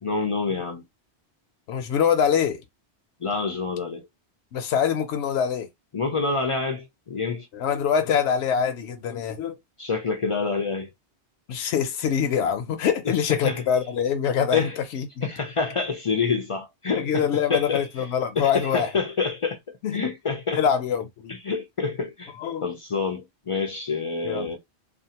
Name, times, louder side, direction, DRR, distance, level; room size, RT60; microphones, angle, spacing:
voice 1, 0.0-0.8 3.2-4.1 5.9-7.5 9.8-10.9 13.1-13.6 14.5-14.8 15.2-18.1 18.4-20.6 21.3-22.3 22.6-24.6, left 4 dB, 55° left, 0.3 m, -27 dB
voice 2, 1.7-2.6 4.5-5.7 7.5-9.6 11.5-15.3 17.0-18.9 19.8-20.0 20.5-21.4 22.4-22.7 24.2-24.5, left 8 dB, 80° left, 0.8 m, -24 dB
2.5 x 2.4 x 2.8 m
omnidirectional pair, 1.1 m